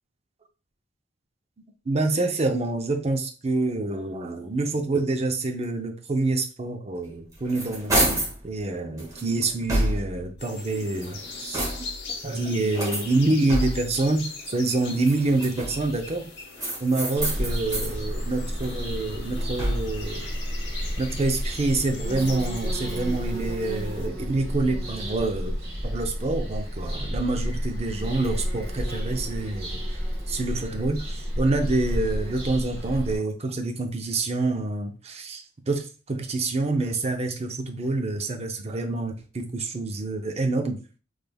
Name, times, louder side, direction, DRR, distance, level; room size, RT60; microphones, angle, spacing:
voice 1, 1.9-11.9 12.2-16.3 16.8-20.3 21.0-25.6 25.8-29.8 30.3-40.8, right 2 dB, 35° right, 0.5 m, -27 dB
sound 1, 7.1-8.4 9.0-10.3 10.9-12.1 12.7-14.0 14.9-15.9 16.6-18.0 18.4-20.0, right 1 dB, 20° right, 1.1 m, -29 dB
sound 2, 10.4-24.1, left 4 dB, 65° left, 0.8 m, -41 dB
Bird vocalization bird call bird song, 17.2-33.2, equal, 55° right, 1.2 m, -31 dB
3.4 x 3.2 x 2.2 m
head